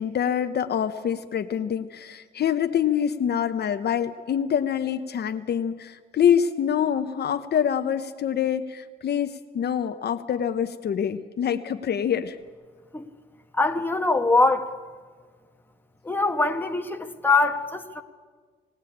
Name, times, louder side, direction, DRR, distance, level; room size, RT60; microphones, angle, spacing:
voice 1, 0.0-12.4, left 8 dB, 55° left, 8 dB, 0.9 m, -25 dB
voice 2, 13.6-14.7 16.0-18.0, left 3 dB, 10° left, 4 dB, 1.5 m, -23 dB
20.0 x 17.5 x 8.6 m, 1.5 s
cardioid pair, 90°, 20 cm